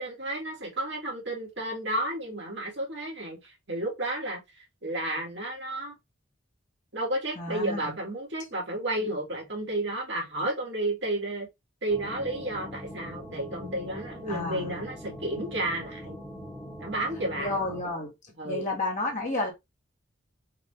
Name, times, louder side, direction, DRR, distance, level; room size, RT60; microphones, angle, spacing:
voice 1, 0.0-4.4 4.8-6.0 6.9-11.5 11.8-16.2 16.8-17.5 18.4-18.7, right 1 dB, 65° right, 1.9 m, -32 dB
voice 2, 7.3-7.9 9.0-9.1 14.3-14.8 17.4-18.1 18.4-19.5, left 2 dB, 40° left, 1.4 m, -31 dB
sound 1, 11.9-17.8, equal, 5° left, 1.3 m, -42 dB
4.8 x 2.5 x 3.3 m
head